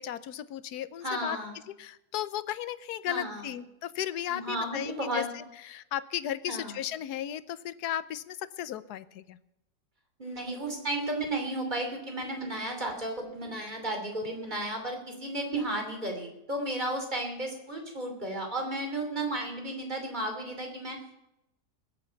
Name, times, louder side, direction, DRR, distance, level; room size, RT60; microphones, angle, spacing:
voice 1, 0.0-1.4 1.8-9.4, left 11 dB, 75° left, 15 dB, 1.2 m, -35 dB
voice 2, 1.0-1.6 3.1-3.5 4.3-5.3 6.5-6.8 10.2-21.0, right 1 dB, 25° right, 3 dB, 3.1 m, -33 dB
20.0 x 8.4 x 5.8 m, 0.87 s
omnidirectional pair, 1.7 m